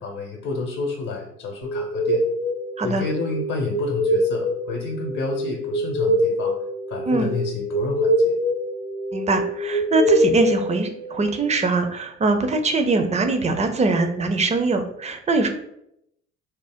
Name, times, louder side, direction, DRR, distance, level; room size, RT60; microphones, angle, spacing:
voice 1, 0.0-2.2 2.8-6.5 6.9-8.4, left 3 dB, 50° left, -1 dB, 0.8 m, -30 dB
sound 1, 1.6-11.3, equal, 80° right, 0.9 m, -24 dB
voice 2, 9.1-15.5, right 3 dB, 20° right, 7 dB, 0.4 m, -22 dB
2.7 x 2.0 x 3.5 m, 0.77 s
hypercardioid pair, 55°, 35 cm